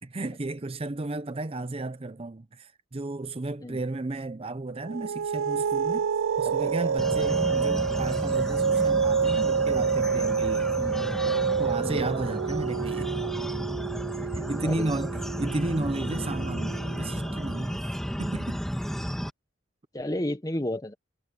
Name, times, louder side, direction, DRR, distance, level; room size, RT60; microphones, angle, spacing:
voice 1, 0.0-6.1 6.4-10.7 11.6-13.1 14.3-17.9 18.2-18.6, right 2 dB, 30° right, 0.6 m, -33 dB
sound 1, 4.8-17.6, right 6 dB, 80° right, 0.4 m, -28 dB
voice 2, 6.5-6.9 7.6-7.7 10.7-11.2 11.8-12.0 14.5-15.0 18.1-18.5 19.9-20.9, left 1 dB, 20° left, 1.3 m, -34 dB
sound 2, 7.0-19.3, equal, ahead, 1.9 m, -33 dB
head